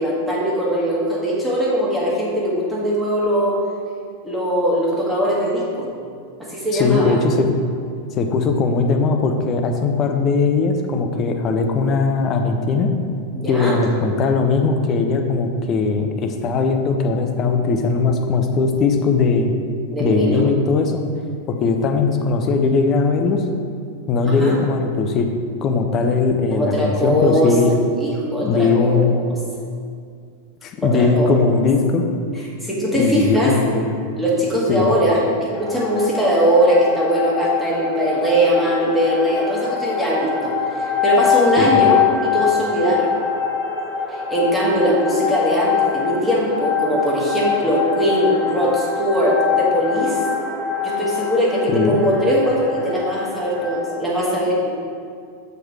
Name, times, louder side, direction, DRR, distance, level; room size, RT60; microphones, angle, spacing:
voice 1, 0.0-3.6 4.2-5.9 6.4-7.1 13.3-13.8 19.9-20.4 24.2-24.6 26.5-27.5 28.0-29.1 30.8-31.3 32.6-33.5 34.2-43.1 44.1-50.2 50.8-54.7, equal, ahead, -6 dB, 1.8 m, -20 dB
voice 2, 6.7-7.5 8.2-12.9 13.5-19.5 20.0-21.1 21.5-23.4 24.1-25.3 25.6-27.7 28.4-29.1 30.6-32.0 32.9-34.0 34.7-34.9 41.6-41.8 51.7-52.0, left 4 dB, 30° left, 5 dB, 0.6 m, -19 dB
sound 1, 35.5-53.8, left 7 dB, 15° left, 1.3 m, -24 dB
6.6 x 4.5 x 4.8 m, 2.2 s
figure-of-eight pair, 90°, 0 cm